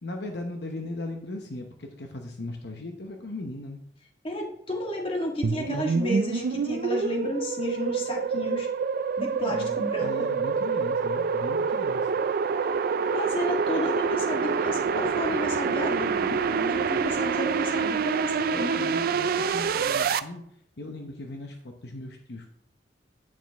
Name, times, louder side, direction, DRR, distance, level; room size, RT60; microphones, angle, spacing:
voice 1, 0.0-3.8 9.4-12.1 18.5-20.4 20.8-22.5, left 2 dB, 65° left, 3 dB, 0.9 m, -38 dB
voice 2, 4.2-8.7 9.2-10.1 13.1-18.9, left 1 dB, 30° left, 0 dB, 1.6 m, -32 dB
sound 1, 5.4-20.2, right 5 dB, 55° right, 0.4 m, -27 dB
9.0 x 6.1 x 3.5 m, 0.70 s
head